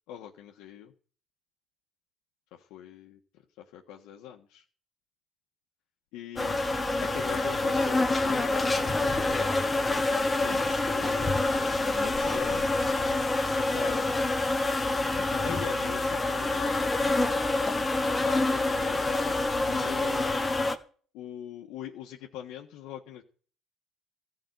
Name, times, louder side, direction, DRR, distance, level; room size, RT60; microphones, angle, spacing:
voice 1, 0.1-0.9 2.5-3.2 3.6-4.6 6.1-6.6 7.0-9.5 10.4-12.7 13.5-14.2 15.3-17.1 18.0-20.3 21.1-23.2, left 10 dB, 85° left, 0 dB, 1.5 m, -42 dB
sound 1, 6.4-20.8, left 2 dB, 15° left, 1.4 m, -27 dB
14.5 x 5.5 x 9.4 m, 0.41 s
cardioid pair, 130°, 0 cm